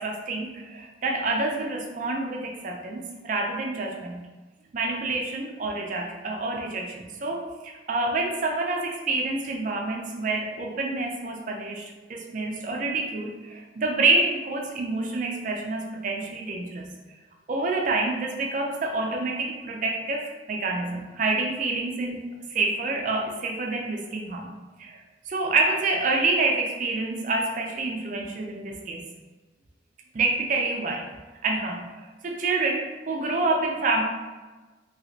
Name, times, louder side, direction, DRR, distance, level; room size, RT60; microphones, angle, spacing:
voice 1, 0.0-4.2 4.7-16.9 17.5-22.2 22.5-24.5 24.8-25.0 25.3-29.1 30.1-31.1 31.4-34.0, right 3 dB, 40° right, 1 dB, 0.4 m, -27 dB
3.1 x 2.8 x 2.6 m, 1.3 s
head